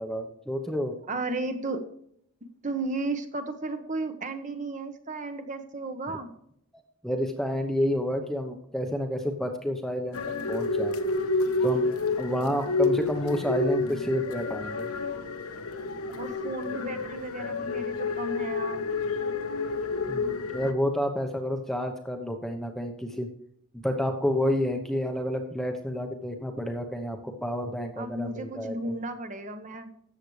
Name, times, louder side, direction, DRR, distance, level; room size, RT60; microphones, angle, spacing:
voice 1, 0.0-1.0 7.0-11.0 11.6-11.8 12.2-14.9 20.1-23.3 23.7-28.9, equal, ahead, 4 dB, 0.8 m, -30 dB
voice 2, 1.1-1.8 2.6-6.3 16.2-18.9 28.0-29.9, right 2 dB, 35° right, 7 dB, 1.1 m, -34 dB
sound 1, 10.1-20.7, left 3 dB, 80° left, 1.2 m, -29 dB
13.5 x 8.3 x 3.2 m, 0.70 s
head